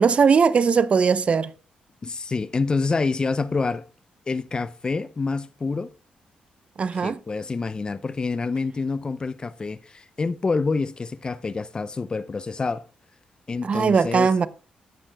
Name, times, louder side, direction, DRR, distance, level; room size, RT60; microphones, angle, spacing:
voice 1, 0.0-1.5 6.8-7.2 13.6-14.5, right 5 dB, 45° right, 0.6 m, -19 dB
voice 2, 2.0-3.9 4.3-5.9 6.9-12.8 13.5-14.3, left 4 dB, 30° left, 0.6 m, -27 dB
15.0 x 8.6 x 2.3 m
cardioid pair, 85°, 3 cm